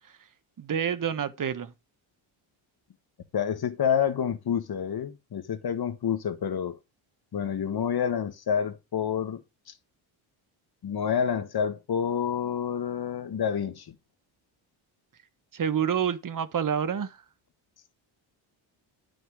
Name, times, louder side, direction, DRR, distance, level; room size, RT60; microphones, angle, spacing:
voice 1, 0.6-1.7 15.5-17.2, right 8 dB, 40° right, 1.3 m, -28 dB
voice 2, 3.3-6.8 7.3-9.4 9.7-9.8 10.8-13.9, left 8 dB, 50° left, 1.6 m, -28 dB
11.5 x 6.4 x 4.8 m
cardioid pair, 100°, 49 cm